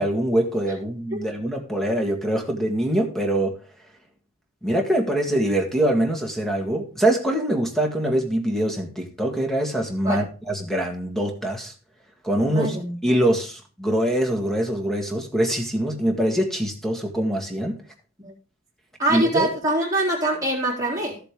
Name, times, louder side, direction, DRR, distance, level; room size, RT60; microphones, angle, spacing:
voice 1, 0.0-3.6 4.6-11.7 12.2-12.8 13.0-17.8 19.1-19.5, right 1 dB, ahead, 1.9 m, -23 dB
voice 2, 12.5-12.9 18.2-18.3 19.0-21.2, right 1 dB, 15° right, 3.5 m, -24 dB
13.5 x 7.6 x 3.8 m
head